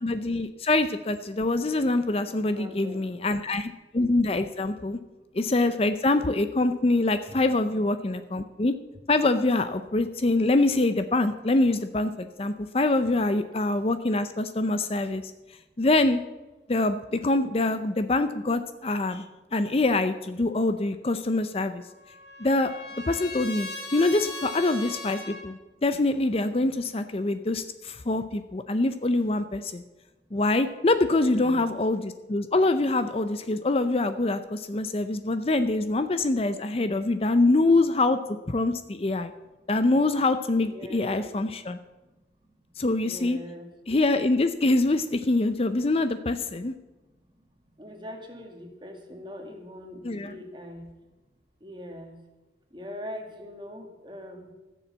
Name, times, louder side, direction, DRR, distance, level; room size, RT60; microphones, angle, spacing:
voice 1, 0.0-5.0 5.3-8.7 9.1-15.2 15.8-16.2 16.7-19.2 19.5-21.8 22.4-22.7 23.1-29.8 30.3-38.2 38.5-39.3 39.7-41.8 42.8-43.4 43.9-46.7 50.0-50.3, left 2 dB, 35° left, 10 dB, 0.5 m, -25 dB
voice 2, 2.2-3.0 7.3-7.4 31.0-31.6 40.7-41.4 43.0-43.7 47.8-50.9 51.6-52.2 52.7-54.5, left 1 dB, 25° right, 3 dB, 1.9 m, -42 dB
Trumpet, 21.6-25.5, left 2 dB, 65° left, 2.9 m, -39 dB
15.5 x 6.9 x 7.4 m, 1.1 s
head